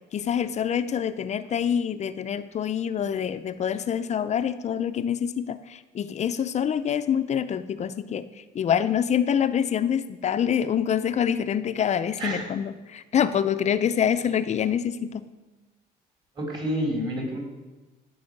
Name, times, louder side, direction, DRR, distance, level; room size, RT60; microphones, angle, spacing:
voice 1, 0.1-8.3 8.5-15.3, left 8 dB, 40° left, 12 dB, 0.5 m, -26 dB
voice 2, 12.2-12.5 16.4-17.4, equal, 25° right, -1 dB, 4.0 m, -29 dB
16.0 x 5.5 x 6.5 m, 1.2 s
cardioid pair, 110°, 17 cm